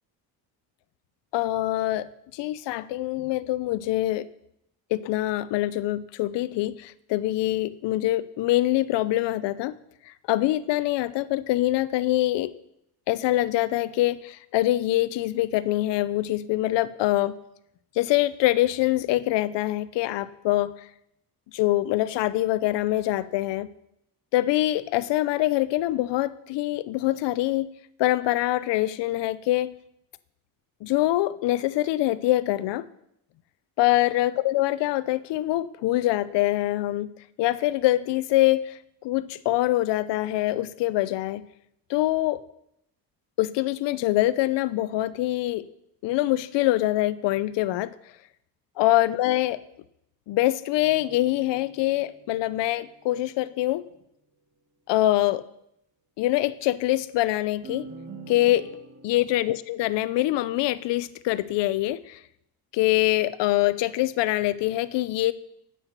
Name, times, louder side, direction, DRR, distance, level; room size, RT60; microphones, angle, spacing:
voice 1, 1.3-4.3 4.9-9.7 10.3-12.5 13.1-17.4 18.0-20.7 21.5-23.7 24.3-27.7 28.0-29.7 30.8-32.9 33.8-37.1 37.4-41.4 41.9-42.4 43.4-45.7 46.0-47.9 48.8-49.6 50.3-53.9 54.9-55.4 56.2-57.9 58.3-58.7 59.0-62.2 62.7-65.3, left 16 dB, 85° left, 16 dB, 0.8 m, -24 dB
sound 1, 50.7-53.3 57.6-59.4, right 3 dB, 50° right, 2.7 m, -45 dB
9.8 x 7.9 x 8.0 m, 0.77 s
cardioid pair, 135°, 41 cm